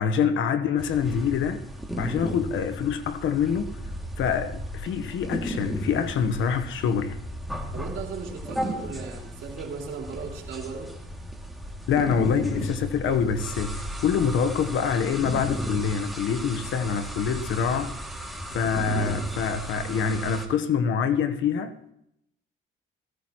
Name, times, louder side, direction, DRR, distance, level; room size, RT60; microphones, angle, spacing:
voice 1, 0.0-1.6 2.0-3.8 4.2-7.2 11.9-17.9 18.5-21.8, left 7 dB, 80° left, 1.1 m, -25 dB
sound 1, 0.8-20.5, equal, ahead, 2.4 m, -35 dB
voice 2, 7.7-11.0, right 5 dB, 70° right, 3.8 m, -37 dB
18.0 x 16.0 x 3.0 m
cardioid pair, 90°, 20 cm